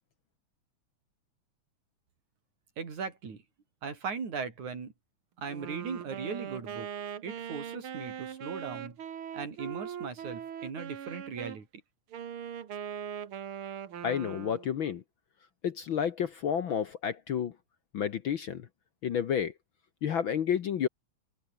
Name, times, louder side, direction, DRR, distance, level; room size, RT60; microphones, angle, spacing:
voice 1, 2.8-3.4 3.8-4.9 5.4-6.9 7.2-9.0 9.3-11.7, right 5 dB, 85° right, 5.6 m, -38 dB
Wind instrument woodwind instrument, 5.5-11.6 12.1-14.8, right 8 dB, 50° right, 2.2 m, -40 dB
voice 2, 14.0-15.0 15.6-17.5 17.9-18.7 19.0-19.5 20.0-20.9, left 8 dB, 60° left, 1.5 m, -30 dB
open air
omnidirectional pair, 3.3 m